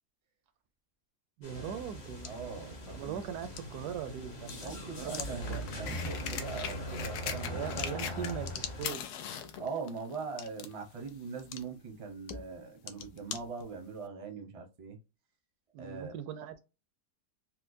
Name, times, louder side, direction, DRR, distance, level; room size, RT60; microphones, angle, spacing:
sound 1, 1.4-8.9, equal, 45° left, 1.1 m, -41 dB
voice 1, 1.4-2.3 2.9-5.6 7.5-9.0 15.7-16.6, right 9 dB, 80° right, 1.1 m, -40 dB
sound 2, 1.7-14.1, left 7 dB, 70° left, 0.8 m, -48 dB
voice 2, 2.2-3.2 4.6-7.7 9.6-15.0 15.8-16.1, right 5 dB, 35° right, 0.5 m, -41 dB
sound 3, 5.0-8.5 8.8-10.8 11.6-11.7, left 8 dB, 85° left, 1.2 m, -40 dB
4.4 x 2.1 x 2.6 m
omnidirectional pair, 1.7 m